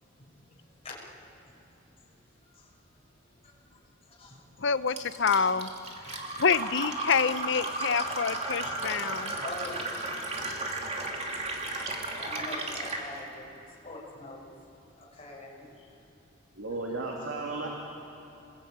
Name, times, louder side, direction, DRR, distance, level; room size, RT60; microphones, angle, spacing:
voice 1, 0.1-2.7 3.2-4.5 6.0-6.3 7.0-7.1 8.4-10.4 11.0-11.2 11.8-14.5 14.9-16.1, left 1 dB, 30° left, -4 dB, 5.6 m, -46 dB
voice 2, 4.6-5.7 6.1-9.4, left 6 dB, 65° left, 13 dB, 0.8 m, -27 dB
Fill (with liquid), 5.0-13.1, right 2 dB, 35° right, 2.7 m, -34 dB
voice 3, 16.6-17.7, right 3 dB, 70° right, -1 dB, 2.9 m, -34 dB
27.5 x 20.5 x 8.9 m, 2.8 s
head